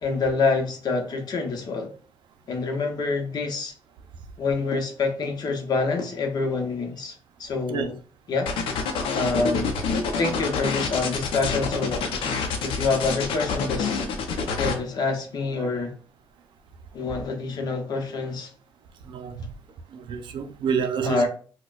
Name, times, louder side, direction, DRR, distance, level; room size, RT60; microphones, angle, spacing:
voice 1, 0.0-1.9 2.5-3.7 4.4-7.1 7.4-8.0 8.3-8.5 9.1-9.8 10.2-12.1 12.6-14.0 14.6-15.9 16.9-18.5 21.0-21.3, left 4 dB, 50° left, 0.8 m, -26 dB
sound 1, 8.4-14.7, left 5 dB, 80° left, 0.6 m, -27 dB
voice 2, 19.1-19.5 19.9-21.3, right 6 dB, 65° right, 0.5 m, -28 dB
4.1 x 2.2 x 2.4 m
cardioid pair, 130°, 9 cm